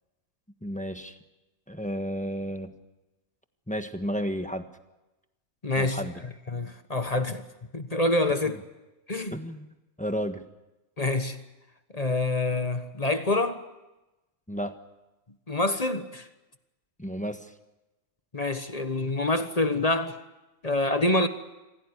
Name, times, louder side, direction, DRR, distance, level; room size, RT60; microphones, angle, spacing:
voice 1, 0.6-1.2 1.7-2.7 3.7-4.7 5.8-6.1 9.3-9.7 10.0-10.4 14.5-14.8 17.0-17.5, equal, 5° left, 1.3 m, -32 dB
voice 2, 5.6-6.0 6.5-7.4 7.7-8.6 9.1-9.3 11.0-11.4 11.9-13.6 15.5-16.3 18.3-20.2 20.6-21.3, left 2 dB, 30° left, 1.3 m, -26 dB
26.0 x 17.0 x 9.8 m
omnidirectional pair, 1.3 m